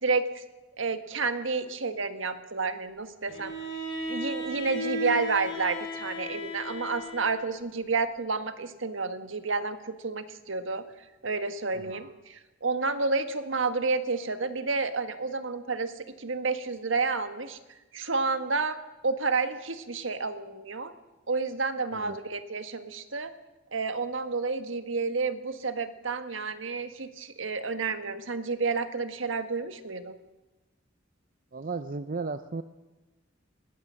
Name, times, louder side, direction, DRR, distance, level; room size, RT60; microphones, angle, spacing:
voice 1, 0.0-0.4 0.8-3.5 4.1-10.8 11.2-18.8 19.0-20.9 21.3-23.3 23.7-30.1, right 4 dB, 75° right, 9 dB, 1.6 m, -30 dB
Bowed string instrument, 3.3-7.6, equal, 70° left, 6.4 m, -35 dB
voice 2, 11.7-12.1 21.9-22.2 31.5-32.6, right 3 dB, 45° right, 11 dB, 0.7 m, -35 dB
21.0 x 19.0 x 7.6 m, 1.1 s
head